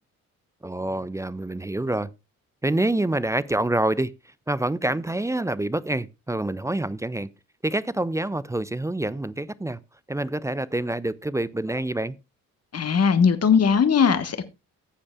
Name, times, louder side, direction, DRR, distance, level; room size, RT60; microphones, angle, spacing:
voice 1, 0.6-2.1 2.6-4.1 4.5-7.3 7.6-9.8 10.1-12.1, right 1 dB, 5° right, 0.4 m, -26 dB
voice 2, 12.7-14.4, left 6 dB, 35° left, 1.3 m, -19 dB
15.0 x 8.5 x 2.3 m
hypercardioid pair, 45°, 43 cm